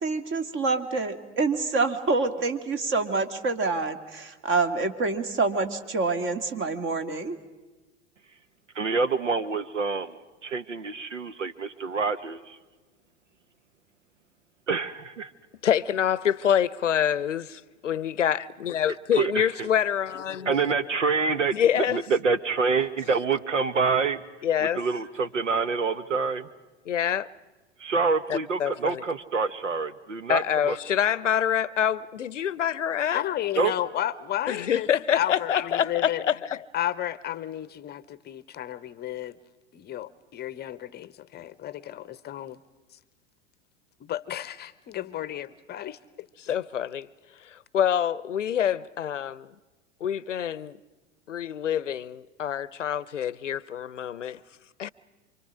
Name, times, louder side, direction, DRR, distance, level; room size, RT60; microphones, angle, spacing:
voice 1, 0.0-7.4, right 3 dB, 35° right, 2.0 m, -27 dB
voice 2, 8.7-12.6 14.7-15.3 19.1-19.7 20.4-24.2 24.6-26.5 27.8-30.8 33.6-33.7, right 4 dB, 90° right, 1.0 m, -27 dB
voice 3, 15.6-20.6 21.5-22.0 24.4-24.8 26.9-27.3 28.3-29.0 30.3-33.2 34.5-36.7 46.5-47.1 47.4-49.5 50.0-50.8 51.3-54.4 54.8-54.9, left 9 dB, 85° left, 0.7 m, -26 dB
voice 4, 33.1-36.2 36.7-39.4 39.7-42.6 44.0-46.5, left 12 dB, 25° left, 0.8 m, -33 dB
28.0 x 24.0 x 6.3 m
figure-of-eight pair, 90°, 36 cm